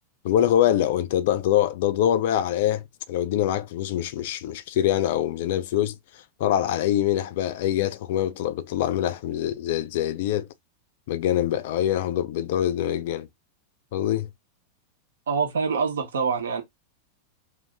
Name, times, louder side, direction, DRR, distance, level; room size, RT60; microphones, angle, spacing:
voice 1, 0.2-10.5 11.1-13.3 13.9-14.3, left 11 dB, 50° left, 0.3 m, -24 dB
voice 2, 15.3-16.6, right 5 dB, 65° right, 0.9 m, -25 dB
2.7 x 2.5 x 3.4 m
figure-of-eight pair, 90°, 0 cm